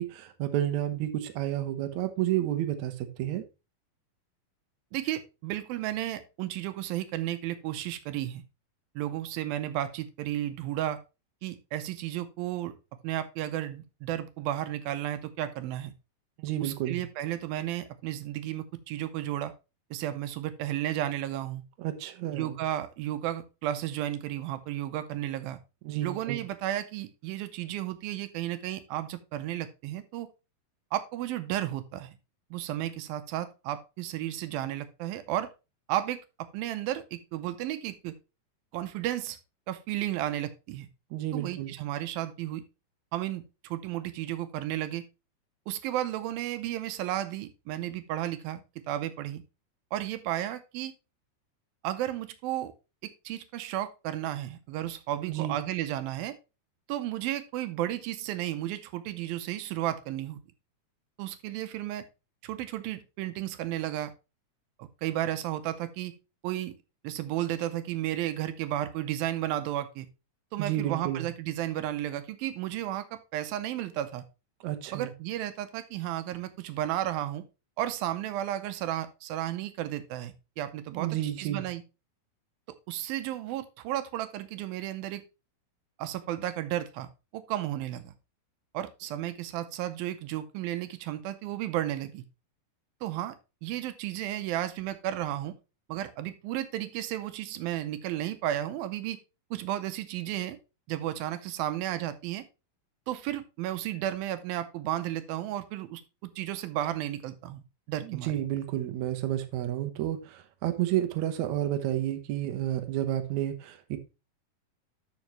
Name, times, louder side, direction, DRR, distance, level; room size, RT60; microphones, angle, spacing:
voice 1, 0.0-3.4 16.4-17.0 21.8-22.6 25.8-26.4 41.1-41.7 55.3-55.6 70.6-71.3 74.6-75.1 81.0-81.7 108.0-114.0, right 12 dB, 70° right, 1.9 m, -31 dB
voice 2, 4.9-8.4 9.0-11.0 11.4-12.8 13.0-15.9 16.6-19.5 19.9-21.6 22.3-25.6 26.0-30.3 30.9-32.2 32.5-35.5 35.9-38.2 38.7-39.4 39.7-40.9 41.3-42.6 43.1-45.0 45.7-49.4 49.9-50.9 51.8-52.7 53.0-56.4 56.9-60.4 61.2-62.0 62.4-64.1 64.8-66.1 66.4-66.7 67.0-70.1 70.5-74.2 74.9-77.4 77.8-81.8 82.9-85.2 86.0-88.1 88.7-92.2 93.0-93.3 93.6-95.6 95.9-99.2 99.5-100.6 100.9-102.4 103.1-108.3, right 13 dB, 85° right, 2.5 m, -33 dB
12.0 x 5.3 x 3.1 m
omnidirectional pair, 4.3 m